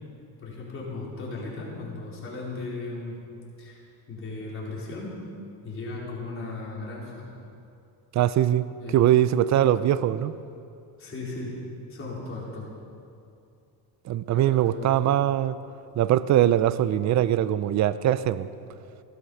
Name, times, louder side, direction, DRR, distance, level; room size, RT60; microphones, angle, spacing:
voice 1, 0.4-3.2 3.6-3.8 4.1-5.2 5.6-7.3 8.8-9.1 9.5-9.7 11.0-11.5 11.9-12.7 14.3-15.1, left 3 dB, 30° left, -5 dB, 4.5 m, -36 dB
voice 2, 8.1-8.6 8.9-10.3 14.1-15.6 16.0-18.5, right 12 dB, 40° right, 15 dB, 0.5 m, -22 dB
17.0 x 12.5 x 5.7 m, 2.5 s
cardioid pair, 130°, 43 cm